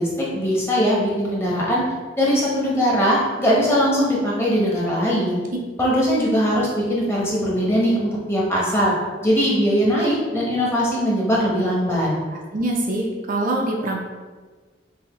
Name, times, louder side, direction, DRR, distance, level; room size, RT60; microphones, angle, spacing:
voice 1, 0.0-1.8 2.2-5.4 5.8-8.9 9.2-12.1, equal, 15° left, -6 dB, 1.1 m, -20 dB
voice 2, 12.5-14.0, right 1 dB, 45° right, 0 dB, 0.5 m, -24 dB
5.5 x 2.7 x 3.1 m, 1.4 s
head